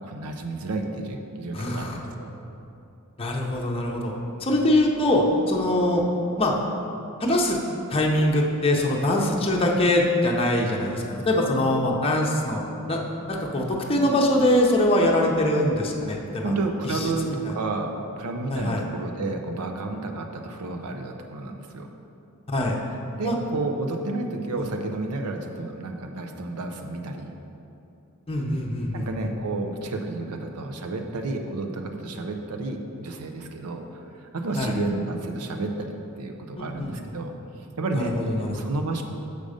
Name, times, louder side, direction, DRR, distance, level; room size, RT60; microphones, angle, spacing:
voice 1, 0.0-2.3 16.1-21.9 23.2-27.3 28.9-37.3 37.8-38.2 38.5-39.0, right 2 dB, 90° right, 4 dB, 0.6 m, -31 dB
voice 2, 1.5-2.0 3.2-4.1 4.4-6.0 6.4-6.5 7.2-7.6 7.9-12.6 12.9-13.0 13.3-16.6 16.8-17.0 17.3-17.5 18.5-18.8 22.5-22.8 23.2-23.4 24.6-24.7 28.3-29.3 34.6-34.7 36.6-37.1 37.9-38.7, left 1 dB, 25° left, -1 dB, 0.7 m, -23 dB
6.6 x 5.2 x 5.0 m, 2.7 s
head